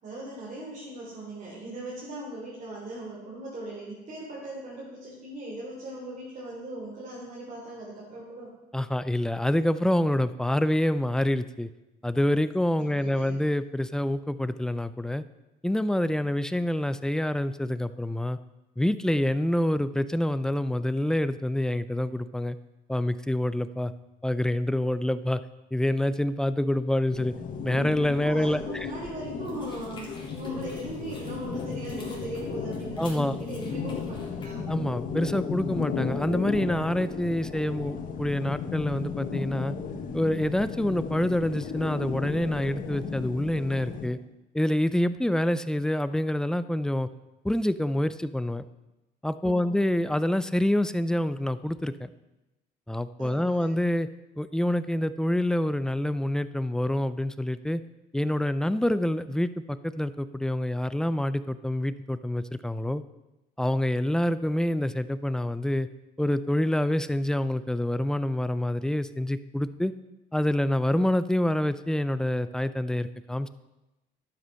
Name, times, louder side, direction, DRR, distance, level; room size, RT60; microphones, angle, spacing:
voice 1, 0.0-8.5 12.8-13.3 28.2-34.7 49.4-49.7 53.2-53.7, right 1 dB, 45° right, -6 dB, 3.8 m, -39 dB
voice 2, 8.7-11.7 12.0-15.2 15.6-18.4 18.8-22.6 22.9-23.9 24.2-25.4 25.7-27.3 27.6-28.9 33.0-33.4 34.7-39.7 40.1-44.2 44.5-47.1 47.4-48.7 49.2-52.1 52.9-54.1 54.4-57.8 58.1-63.0 63.6-65.9 66.2-69.9 70.3-73.5, left 1 dB, 5° left, 13 dB, 0.5 m, -27 dB
sound 1, 27.1-44.1, left 5 dB, 55° left, 1.3 m, -35 dB
sound 2, 29.4-34.4, left 2 dB, 30° left, 3.6 m, -51 dB
11.5 x 8.0 x 5.7 m, 0.99 s
cardioid pair, 110°, 17 cm